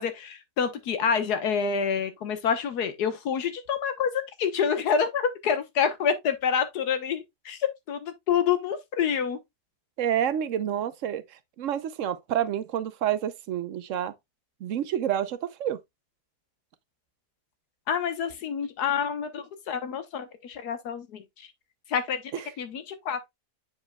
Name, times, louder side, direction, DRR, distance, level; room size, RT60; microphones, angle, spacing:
voice 1, 0.0-4.1 4.4-9.4 17.9-21.5 21.9-22.2 22.6-23.3, left 7 dB, 80° left, 1.6 m, -27 dB
voice 2, 10.0-11.2 11.6-14.1 14.6-15.8 22.3-22.5, right 10 dB, 65° right, 0.8 m, -28 dB
8.3 x 5.0 x 2.2 m
omnidirectional pair, 1.7 m